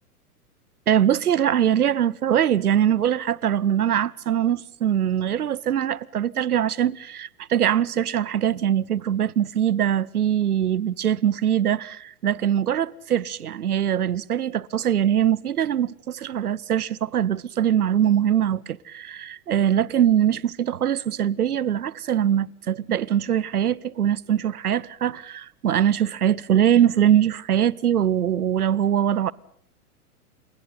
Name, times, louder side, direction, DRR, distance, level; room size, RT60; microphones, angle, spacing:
voice 1, 0.9-29.3, right 10 dB, 75° right, 0.9 m, -22 dB
30.0 x 28.0 x 4.1 m
figure-of-eight pair, 100°, 45 cm